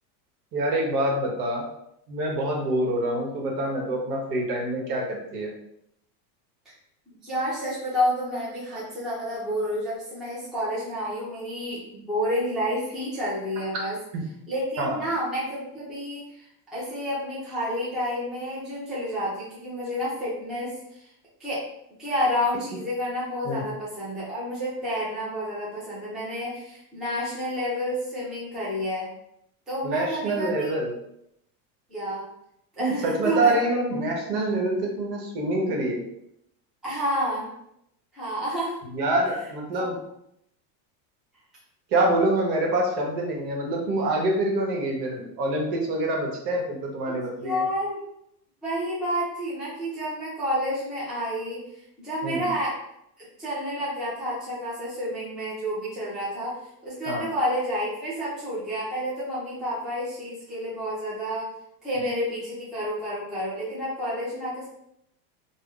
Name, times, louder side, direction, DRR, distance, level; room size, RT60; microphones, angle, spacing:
voice 1, 0.5-1.7 2.1-5.5 14.1-14.2 14.8-15.0 23.4-23.6 29.8-30.9 32.8-36.0 38.9-40.0 41.9-47.6 52.2-52.4 57.1-57.2, right 1 dB, 75° right, 0 dB, 1.1 m, -26 dB
voice 2, 7.1-14.0 14.5-21.1 21.4-21.7 22.0-29.1 29.7-30.8 31.9-32.2 32.8-33.6 36.8-37.5 38.1-38.8 39.7-39.9 47.1-48.0 48.6-52.8 53.2-61.5 61.8-64.7, equal, ahead, -9 dB, 0.5 m, -30 dB
2.6 x 2.1 x 3.6 m, 0.78 s
supercardioid pair, 160°, 48 cm